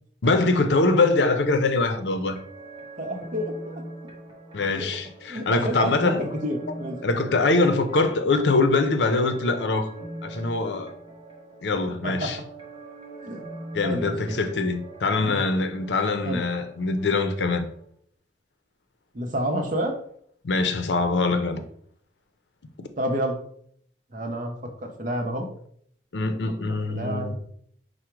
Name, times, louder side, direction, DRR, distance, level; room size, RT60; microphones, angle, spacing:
voice 1, 0.2-2.4 4.5-6.2 7.0-9.9 10.2-10.9 11.6-12.4 13.7-17.7 20.4-21.7 22.8-22.9 26.1-27.3, left 3 dB, 75° left, 0.6 m, -23 dB
sound 1, 1.4-17.8, right 2 dB, 30° right, 1.1 m, -43 dB
voice 2, 3.0-3.8 4.7-4.9 5.3-7.0 11.9-12.3 13.2-13.4 13.8-14.4 15.1-15.4 16.2-16.4 19.1-20.0 23.0-23.4 24.1-24.5 24.8-25.5 26.9-27.3, equal, 50° right, 0.7 m, -29 dB
4.9 x 2.1 x 4.5 m
head